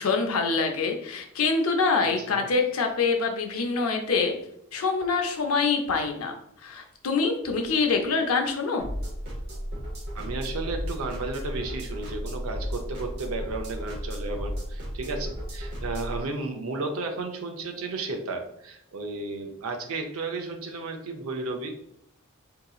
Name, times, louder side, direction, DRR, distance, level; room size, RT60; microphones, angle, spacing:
voice 1, 0.0-4.3 4.7-6.3 6.6-8.9, left 4 dB, 80° left, 4 dB, 0.6 m, -25 dB
sound 1, 8.8-16.2, equal, 50° right, 0.9 m, -34 dB
voice 2, 10.1-21.7, right 3 dB, 75° right, 4 dB, 0.6 m, -33 dB
3.8 x 2.8 x 2.3 m, 0.73 s
head